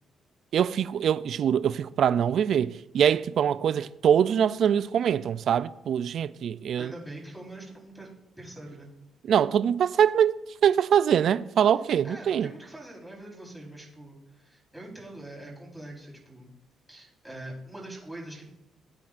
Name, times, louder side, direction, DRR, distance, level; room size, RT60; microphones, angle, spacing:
voice 1, 0.5-6.9 9.3-12.5, right 8 dB, 65° right, 0.3 m, -23 dB
voice 2, 6.8-8.1 8.4-8.9 12.0-16.5 16.9-18.5, right 1 dB, 5° right, 4.1 m, -43 dB
18.0 x 8.5 x 2.5 m
cardioid pair, 90°, 0 cm